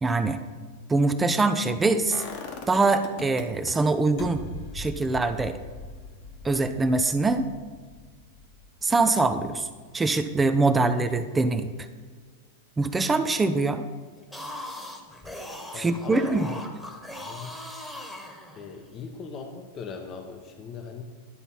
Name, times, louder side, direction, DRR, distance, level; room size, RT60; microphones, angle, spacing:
voice 1, 0.0-0.4 0.9-2.2 2.7-4.4 4.7-5.6 6.4-7.5 8.8-9.7 9.9-11.7 12.8-13.8 15.7-16.5, right 3 dB, 15° right, 9 dB, 0.4 m, -23 dB
sound 1, 2.1-3.7 4.2-10.0 10.3-10.4, left 4 dB, 50° left, 1.2 m, -41 dB
sound 2, 14.2-18.9, left 1 dB, 5° left, 1.3 m, -39 dB
voice 2, 15.7-16.4 17.2-17.6 18.6-21.0, left 5 dB, 35° left, 4 dB, 0.8 m, -39 dB
11.0 x 4.0 x 5.7 m, 1.5 s
figure-of-eight pair, 95°, 0 cm